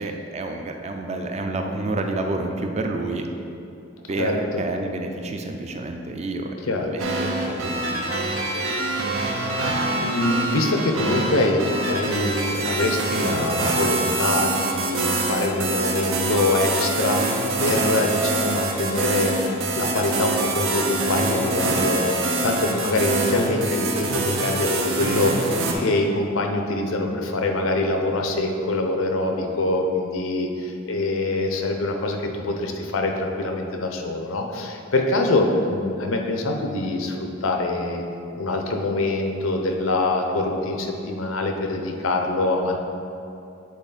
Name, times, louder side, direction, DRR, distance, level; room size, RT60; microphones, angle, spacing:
voice 1, 0.0-3.3 4.1-6.6 6.9-8.1 8.3-8.4 8.7-9.1 22.2-22.6, right 2 dB, 30° right, 4 dB, 0.4 m, -29 dB
voice 2, 4.2-4.6 6.7-6.9 9.2-9.7 10.0-19.3 19.7-38.0 38.4-42.8, left 2 dB, 90° left, 3 dB, 0.7 m, -24 dB
sound 1, 7.0-25.7, right 2 dB, 85° right, 0.7 m, -25 dB
7.9 x 3.6 x 4.0 m, 2.7 s
head